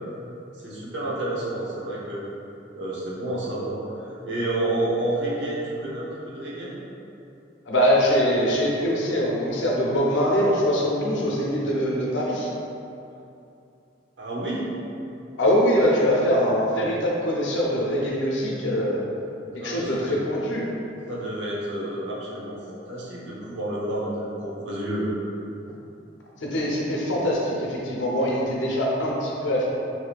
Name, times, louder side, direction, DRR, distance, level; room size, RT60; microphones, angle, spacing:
voice 1, 0.6-2.2 2.7-6.7 14.2-14.7 19.6-20.2 21.1-22.6 22.9-25.1, right 1 dB, 75° right, -6 dB, 0.7 m, -29 dB
voice 2, 7.7-12.5 15.4-19.0 19.5-20.6 26.4-29.7, equal, 85° left, -3 dB, 0.6 m, -23 dB
2.7 x 2.4 x 3.3 m, 2.7 s
head